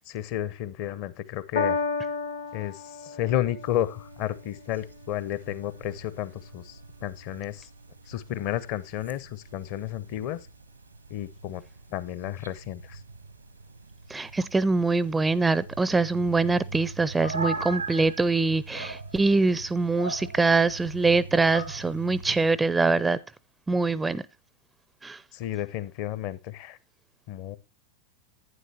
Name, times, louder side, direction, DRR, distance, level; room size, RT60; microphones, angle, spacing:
voice 1, 0.1-1.8 2.5-7.7 8.1-10.4 11.1-11.6 11.9-13.0 25.3-26.8 27.3-27.6, left 12 dB, 45° left, 0.7 m, -32 dB
Piano, 1.5-8.1 8.9-9.0, left 4 dB, 65° left, 1.0 m, -35 dB
Coyote from the window ampl, 3.6-22.6, right 3 dB, 85° right, 0.9 m, -41 dB
voice 2, 14.1-23.2 23.7-24.2 25.0-25.2, right 3 dB, 10° right, 0.4 m, -24 dB
11.0 x 9.5 x 2.7 m
figure-of-eight pair, 90°, 0 cm